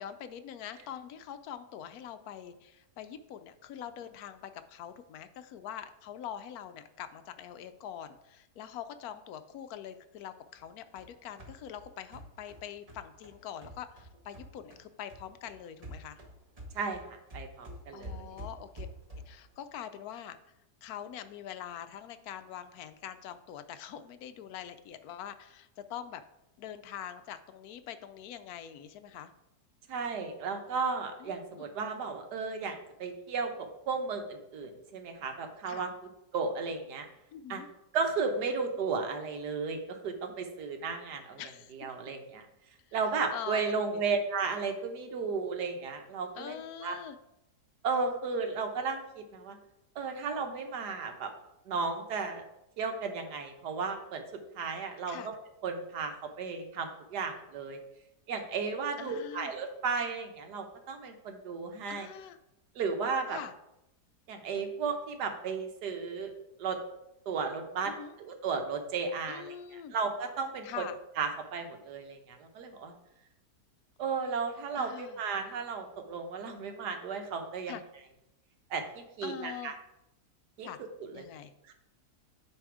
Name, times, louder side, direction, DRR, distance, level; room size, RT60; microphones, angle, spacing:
voice 1, 0.0-16.2 17.9-18.9 19.3-20.4 20.8-26.2 26.6-29.3 31.2-31.7 35.7-35.9 37.3-37.7 41.4-41.7 43.3-44.0 46.4-47.2 55.1-55.3 59.0-59.5 61.9-62.4 63.3-63.5 67.9-68.1 69.3-70.0 70.6-71.0 74.8-75.2 77.7-77.8 79.2-79.8 80.6-80.8 81.1-81.5, left 9 dB, 70° left, 10 dB, 1.0 m, -44 dB
sound 1, 10.6-14.8 15.1-19.5, equal, 25° right, 1.3 m, -47 dB
voice 2, 16.7-18.4 29.9-35.9 36.3-37.1 37.5-37.6 37.9-41.4 41.7-42.5 42.9-47.0 47.8-49.6 50.0-51.3 51.7-52.4 52.8-55.3 55.6-57.8 58.3-62.1 62.7-63.4 64.3-66.3 66.6-66.8 67.3-67.9 68.2-70.9 71.2-72.9 74.0-77.7 78.7-79.7 80.6-80.7 81.0-81.3 81.7-81.8, right 5 dB, 80° right, 5 dB, 1.5 m, -34 dB
9.1 x 3.5 x 4.8 m, 0.86 s
omnidirectional pair, 1.7 m